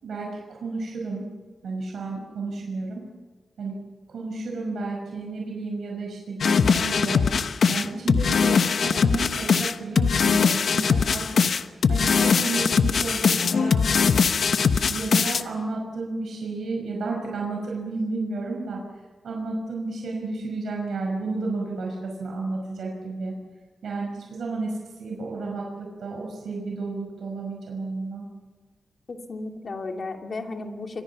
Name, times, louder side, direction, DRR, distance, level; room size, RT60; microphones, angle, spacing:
voice 1, 0.0-1.3 1.6-3.1 3.6-3.8 4.1-7.3 7.7-11.4 11.9-13.9 14.9-18.8 19.2-23.3 23.8-28.3, right 3 dB, 80° right, 0 dB, 5.6 m, -32 dB
sound 1, 6.4-15.4, left 5 dB, 65° left, 1.1 m, -21 dB
voice 2, 29.1-31.0, left 3 dB, 45° left, 3 dB, 2.6 m, -34 dB
29.0 x 25.0 x 5.9 m, 1.3 s
wide cardioid pair, 130°, 0 cm